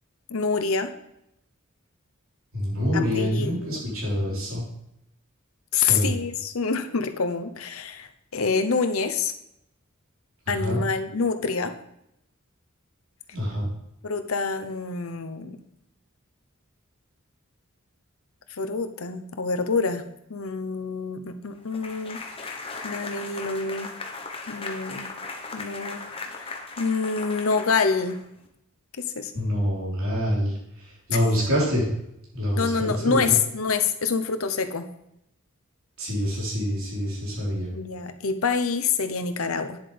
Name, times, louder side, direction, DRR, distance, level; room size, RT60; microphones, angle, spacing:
voice 1, 0.3-0.9 2.9-3.8 5.7-9.3 10.5-11.7 14.0-15.6 18.5-20.0 20.3-23.9 24.5-25.1 25.5-26.0 26.4-28.2 29.1-29.4 31.1-31.2 32.6-34.9 37.7-39.8, left 5 dB, 75° left, 9 dB, 0.8 m, -27 dB
voice 2, 2.5-4.6 5.7-6.1 10.6-10.8 13.3-13.7 29.4-30.5 30.8-31.9 32.3-33.3 36.0-37.7, equal, 70° right, -6 dB, 3.9 m, -26 dB
sound 1, 21.7-28.5, left 3 dB, 25° left, 1.0 m, -37 dB
9.8 x 7.6 x 3.4 m, 0.80 s
head